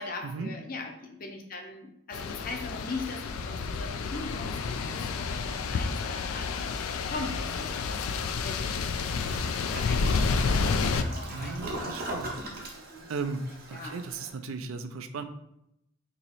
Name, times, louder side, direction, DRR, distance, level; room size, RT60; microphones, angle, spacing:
voice 1, 0.0-6.6 6.9-11.9 12.7-13.1 13.7-14.0, left 3 dB, 40° left, 2 dB, 0.6 m, -41 dB
sound 1, 2.1-11.0, left 4 dB, 85° left, 0.3 m, -30 dB
Toilet flush, 9.0-14.3, right 1 dB, 45° right, 0.7 m, -40 dB
voice 2, 11.3-12.4 13.1-15.2, right 4 dB, 75° right, 9 dB, 0.4 m, -36 dB
3.0 x 2.8 x 4.0 m, 0.79 s
head